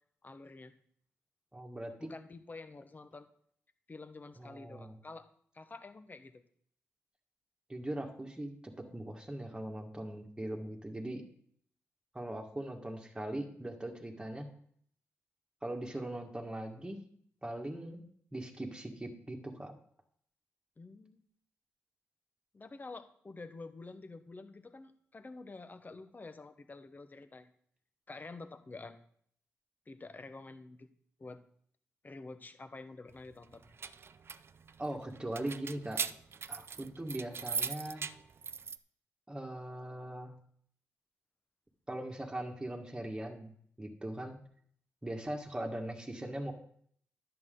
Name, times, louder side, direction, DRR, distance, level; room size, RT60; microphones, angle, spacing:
voice 1, 0.2-0.7 2.0-3.3 3.9-5.3 5.5-6.4 20.8-21.2 22.5-27.5 28.1-29.0 29.9-30.9 31.2-31.4 32.0-33.7, left 3 dB, 35° left, 10 dB, 1.1 m, -48 dB
voice 2, 1.5-2.1 4.4-5.0 7.7-11.2 12.1-14.5 15.6-17.0 17.4-18.0 18.3-19.7 34.8-36.1 36.5-38.1 39.3-40.3 41.9-43.5 43.8-44.4 45.0-46.5, right 1 dB, 15° right, 1 dB, 1.8 m, -40 dB
sound 1, 33.5-38.8, right 6 dB, 50° right, 0.4 m, -40 dB
10.5 x 7.9 x 3.9 m, 0.62 s
cardioid pair, 60°, 5 cm